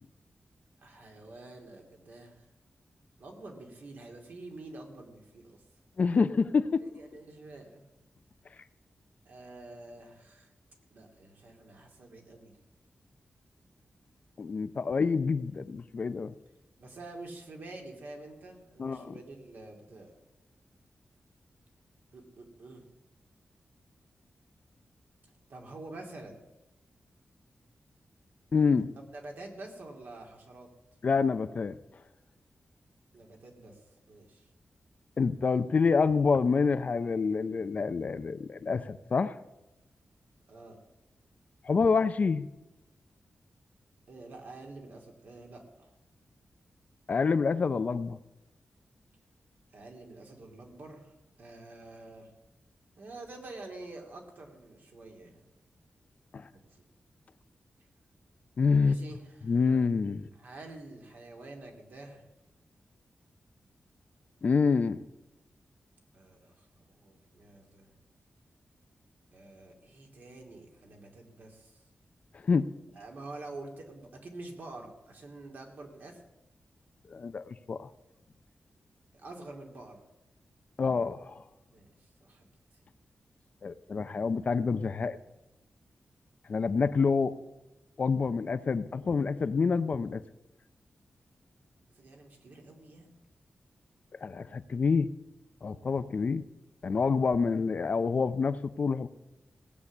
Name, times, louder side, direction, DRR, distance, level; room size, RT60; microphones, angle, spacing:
voice 1, 0.8-2.5 3.2-5.6 6.8-7.8 9.2-10.5 10.9-12.5 16.8-20.1 22.1-22.8 25.5-26.4 28.9-30.7 33.1-33.8 34.1-34.5 40.5-40.8 44.1-45.9 49.7-52.3 53.0-55.4 56.5-56.8 58.8-59.6 60.4-62.3 66.1-67.9 69.3-71.8 72.9-76.2 79.1-80.0 81.7-82.5 91.9-93.2, right 2 dB, 60° right, 2 dB, 2.5 m, -47 dB
voice 2, 6.0-6.8 14.4-16.3 18.8-19.1 28.5-28.9 31.0-31.8 35.2-39.4 41.6-42.5 47.1-48.2 56.3-56.5 58.6-59.0 59.4-60.3 64.4-65.0 72.4-72.7 77.1-77.9 80.8-81.4 83.6-85.2 86.5-87.4 88.0-90.2 94.2-95.1 95.6-96.4 96.8-99.1, left 5 dB, 45° left, 12 dB, 0.5 m, -27 dB
17.0 x 8.2 x 7.2 m, 0.96 s
wide cardioid pair, 170°, 4 cm